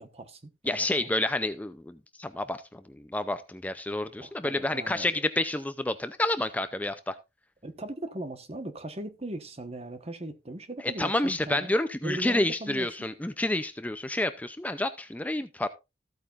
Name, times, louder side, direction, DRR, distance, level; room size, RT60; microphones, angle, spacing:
voice 1, 0.0-1.1 4.2-5.2 7.6-11.7 12.0-13.1, right 1 dB, 35° right, 1.2 m, -39 dB
voice 2, 0.7-2.8 3.1-7.2 11.0-15.7, left 1 dB, 10° left, 0.5 m, -29 dB
14.5 x 8.6 x 2.5 m
head